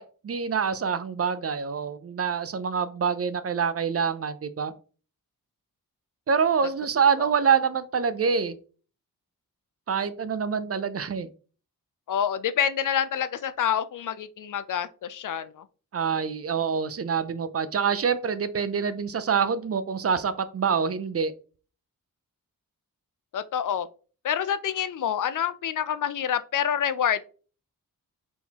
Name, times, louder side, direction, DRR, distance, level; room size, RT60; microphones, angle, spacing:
voice 1, 0.0-4.7 6.3-8.6 9.9-11.3 15.9-21.3, right 6 dB, 40° right, 13 dB, 0.5 m, -26 dB
voice 2, 12.1-15.6 23.3-23.9 24.2-27.3, left 8 dB, 60° left, 14 dB, 0.5 m, -27 dB
4.3 x 3.7 x 2.9 m, 0.37 s
wide cardioid pair, 100°, 35 cm